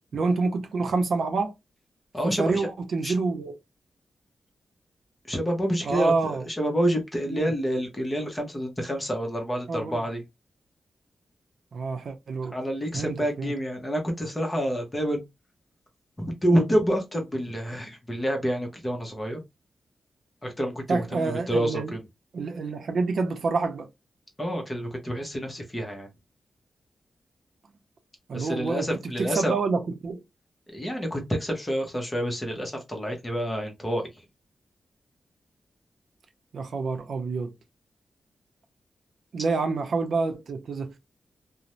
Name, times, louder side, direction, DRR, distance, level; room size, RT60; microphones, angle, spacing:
voice 1, 0.1-1.5 2.4-3.5 5.8-6.4 7.3-7.5 9.7-10.0 11.7-12.6 12.9-13.5 20.9-21.9 22.3-23.9 28.3-28.9 29.2-30.2 36.5-37.5 39.3-41.1, right 4 dB, 70° right, 0.5 m, -27 dB
voice 2, 2.1-2.7 3.0-3.1 5.2-10.2 12.5-15.2 16.2-19.4 20.4-22.0 24.4-26.1 28.3-29.5 30.7-34.0, equal, 20° left, 0.8 m, -28 dB
2.5 x 2.1 x 3.0 m
wide cardioid pair, 135°, 0 cm